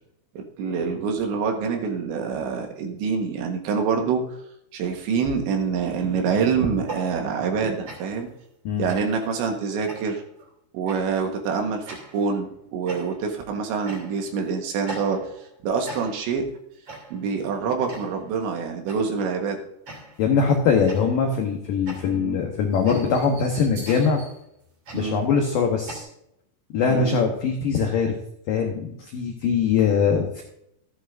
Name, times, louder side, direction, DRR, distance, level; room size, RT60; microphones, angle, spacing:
voice 1, 0.4-4.4 4.7-8.3 8.8-10.2 10.7-11.9 12.1-15.3 15.6-16.5 17.1-19.6 22.1-22.4 24.9-25.2 26.9-27.2, right 5 dB, 75° right, 3 dB, 3.4 m, -26 dB
sound 1, 6.7-7.6 7.9-8.3 8.9-9.3 9.9-10.3 10.9-11.2 11.9-12.3 12.9-13.4 13.9-14.4 14.9-15.5 15.9-16.4 16.9-17.3 17.9-18.3 18.9-19.2 19.9-20.4 20.9-26.0, right 2 dB, 35° right, 3.1 m, -40 dB
voice 2, 20.2-24.2 24.9-26.1 26.7-28.1 28.5-30.4, left 5 dB, 80° left, 2 dB, 1.9 m, -22 dB
14.0 x 11.0 x 2.6 m, 0.76 s
omnidirectional pair, 5.7 m